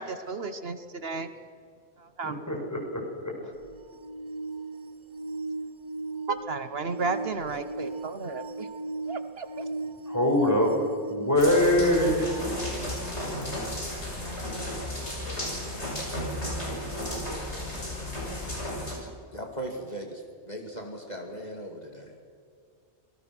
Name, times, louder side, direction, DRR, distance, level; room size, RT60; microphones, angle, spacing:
voice 1, 0.0-1.3 2.0-2.4 6.3-8.7 9.1-9.7, right 4 dB, 65° right, 10 dB, 1.3 m, -33 dB
voice 2, 2.2-3.3 10.1-10.8 11.1-12.5, left 1 dB, 15° left, 0 dB, 5.4 m, -24 dB
sound 1, 3.6-13.3 15.6-15.7, right 2 dB, 30° right, 0.7 m, -38 dB
sound 2, 11.4-19.0, left 1 dB, 90° left, 6.7 m, -33 dB
voice 3, 19.3-22.1, right 1 dB, 40° left, 2 dB, 2.5 m, -38 dB
26.5 x 19.0 x 6.1 m, 2.3 s
omnidirectional pair, 1.1 m